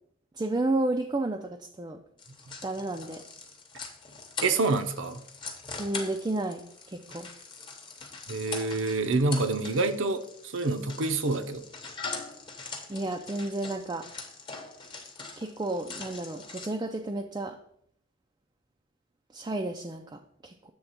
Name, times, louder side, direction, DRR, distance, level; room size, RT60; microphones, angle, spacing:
voice 1, 0.3-2.0 2.6-3.2 5.8-6.6 6.9-7.3 12.9-14.0 15.4-17.6 19.3-20.7, right 2 dB, 20° right, 2 dB, 0.3 m, -31 dB
sound 1, 2.2-16.7, left 4 dB, 20° left, 0.8 m, -42 dB
voice 2, 4.4-5.2 8.3-11.7, right 3 dB, 60° right, 9 dB, 0.7 m, -27 dB
7.9 x 3.5 x 5.7 m, 0.69 s
head